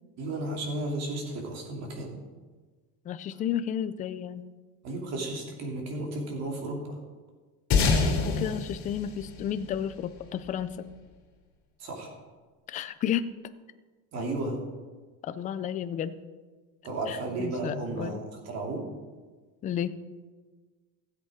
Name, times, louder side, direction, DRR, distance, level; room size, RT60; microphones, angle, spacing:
voice 1, 0.2-2.1 4.8-7.0 11.8-12.1 14.1-14.6 16.8-18.9, right 2 dB, 45° right, 1 dB, 2.8 m, -33 dB
voice 2, 3.1-4.4 8.2-10.8 12.7-13.3 15.2-16.1 17.1-18.2 19.6-19.9, left 9 dB, 20° left, 12 dB, 0.3 m, -32 dB
sound 1, 7.7-10.5, left 4 dB, 50° left, 2.7 m, -27 dB
16.5 x 8.1 x 5.0 m, 1.4 s
cardioid pair, 175°, 37 cm